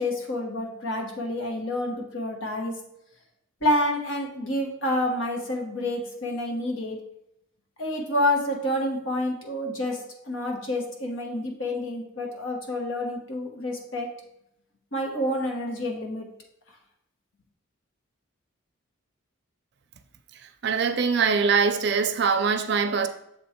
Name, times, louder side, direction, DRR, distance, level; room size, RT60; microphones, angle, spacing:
voice 1, 0.0-2.7 3.6-7.0 7.8-14.1 14.9-16.3, left 1 dB, 70° left, 1.3 m, -28 dB
voice 2, 20.6-23.1, right 5 dB, 55° right, 0.5 m, -23 dB
6.9 x 3.1 x 4.3 m
head